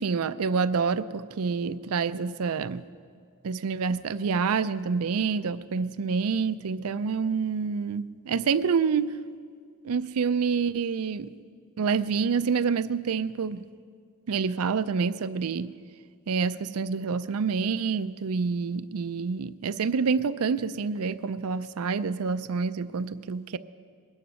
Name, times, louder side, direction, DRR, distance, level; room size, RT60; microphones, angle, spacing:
voice 1, 0.0-2.8 3.4-9.1 9.8-11.3 11.8-13.6 14.3-15.7 16.3-23.6, right 5 dB, 80° right, 14 dB, 0.5 m, -27 dB
20.5 x 9.8 x 6.3 m, 2.1 s
head